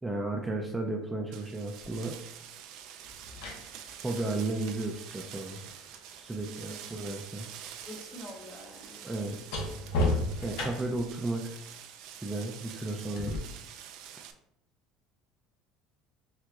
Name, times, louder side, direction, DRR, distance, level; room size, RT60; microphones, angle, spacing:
voice 1, 0.0-2.1 4.0-5.6 6.2-7.5 9.0-9.4 10.4-11.5 12.2-13.4, right 2 dB, 10° right, 1 dB, 0.5 m, -33 dB
sound 1, 1.3-14.3, right 9 dB, 70° right, 0.4 m, -47 dB
sound 2, 1.8-2.0 3.0-7.1 7.4-11.1 13.2-13.4, left 1 dB, 80° left, 0.9 m, -36 dB
voice 2, 6.4-7.0 7.9-9.0, equal, 30° left, 1 dB, 0.9 m, -46 dB
5.9 x 2.5 x 2.4 m, 0.76 s
supercardioid pair, 115°, 0 cm